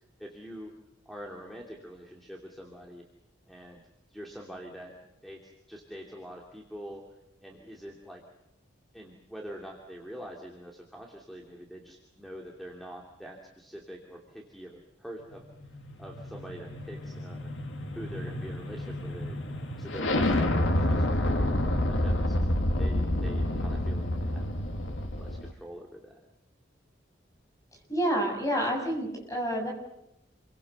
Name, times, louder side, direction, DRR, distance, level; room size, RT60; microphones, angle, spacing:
voice 1, 0.2-0.7 1.0-3.0 3.4-3.8 4.1-4.9 5.2-7.0 7.4-8.2 8.9-15.5 16.0-17.5 17.9-19.4 19.8-21.0 21.9-22.4 22.8-24.5 25.2-26.2, equal, ahead, 0 dB, 2.8 m, -44 dB
sound 1, 15.3-25.5, left 1 dB, 85° left, 2.1 m, -29 dB
voice 2, 27.9-29.7, equal, 15° left, 1 dB, 6.9 m, -28 dB
28.5 x 23.5 x 6.8 m, 0.86 s
head